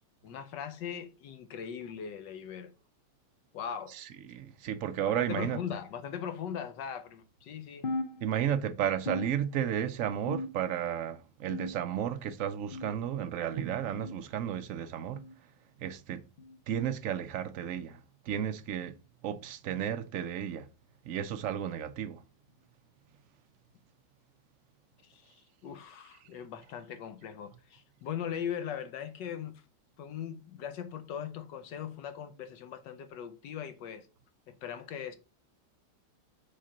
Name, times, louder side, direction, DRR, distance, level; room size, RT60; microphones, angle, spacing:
voice 1, 0.2-2.7 3.5-3.9 5.1-7.9 25.0-29.6 30.0-34.1 34.5-35.2, left 8 dB, 70° left, 1.4 m, -40 dB
voice 2, 4.0-5.6 8.2-15.3 15.8-16.2 16.7-18.0 18.3-19.0 19.2-20.7 21.1-22.2, right 9 dB, 85° right, 0.7 m, -33 dB
sound 1, 7.8-8.7 9.1-9.9 10.3-10.9 11.5-12.1 12.7-13.1 13.9-14.2 15.2-15.4 16.4-16.6 17.6-17.8 18.8-19.0 20.0-20.2 21.3-21.4 22.5-22.6, left 2 dB, 55° left, 0.6 m, -39 dB
6.6 x 4.0 x 5.1 m
omnidirectional pair, 2.0 m